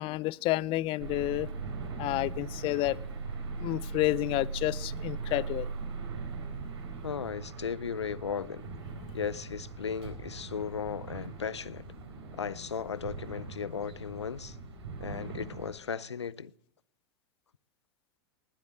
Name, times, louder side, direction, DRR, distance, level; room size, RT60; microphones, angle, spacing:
voice 1, 0.0-1.5 2.0-3.0 3.6-5.7, left 18 dB, 40° left, 0.5 m, -30 dB
sound 1, 1.0-15.7, right 4 dB, 80° right, 3.9 m, -40 dB
voice 2, 7.0-8.7 9.1-11.8 12.4-14.6 15.0-16.5, left 7 dB, 90° left, 0.5 m, -36 dB
20.0 x 8.5 x 7.6 m
hypercardioid pair, 95°, 14 cm